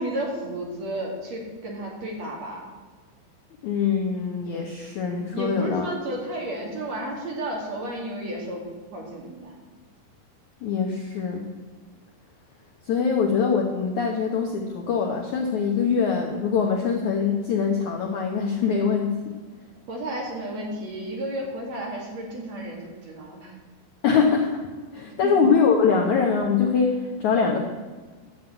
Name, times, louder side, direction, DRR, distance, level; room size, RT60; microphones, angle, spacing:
voice 1, 0.0-2.7 5.3-8.6 8.9-9.5 19.9-23.5 25.2-25.3, right 1 dB, 45° right, -1 dB, 2.9 m, -32 dB
voice 2, 3.6-5.9 10.6-11.5 12.9-19.4 24.0-24.6 24.9-27.6, left 5 dB, 70° left, 1 dB, 1.9 m, -23 dB
11.5 x 7.5 x 8.9 m, 1.4 s
omnidirectional pair, 4.8 m